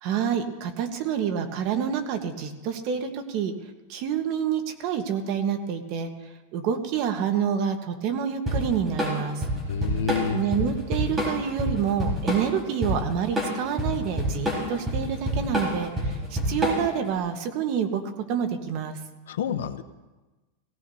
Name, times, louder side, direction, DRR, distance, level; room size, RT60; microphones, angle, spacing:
voice 1, 0.0-3.5 3.9-6.1 6.5-9.4 10.3-18.0 18.3-19.0, right 7 dB, 45° right, 6 dB, 1.3 m, -28 dB
Drum kit / Drum, 8.5-17.1, equal, 15° right, 4.4 m, -27 dB
voice 2, 9.7-10.4 19.3-19.8, left 7 dB, 85° left, 10 dB, 0.8 m, -28 dB
17.5 x 17.5 x 2.8 m, 1.2 s
supercardioid pair, 150°, 0 cm